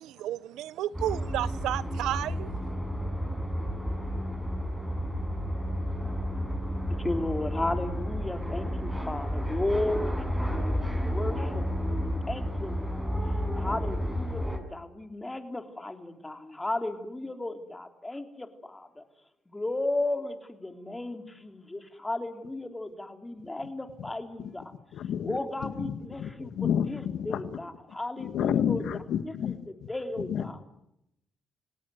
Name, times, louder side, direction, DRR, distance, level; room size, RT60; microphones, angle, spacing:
voice 1, 0.0-2.5, right 13 dB, 90° right, 17 dB, 1.0 m, -32 dB
sound 1, 0.9-14.6, equal, 5° right, 5.9 m, -31 dB
voice 2, 7.0-10.1 10.4-13.0 13.6-19.0 19.5-24.6 25.3-28.8 29.5-29.6 29.9-30.6, left 2 dB, 15° left, 6 dB, 3.6 m, -34 dB
voice 3, 24.9-27.6 28.2-29.6 30.2-30.6, left 9 dB, 75° left, 10 dB, 1.7 m, -31 dB
30.0 x 17.5 x 9.4 m, 0.82 s
cardioid pair, 90°, 0 cm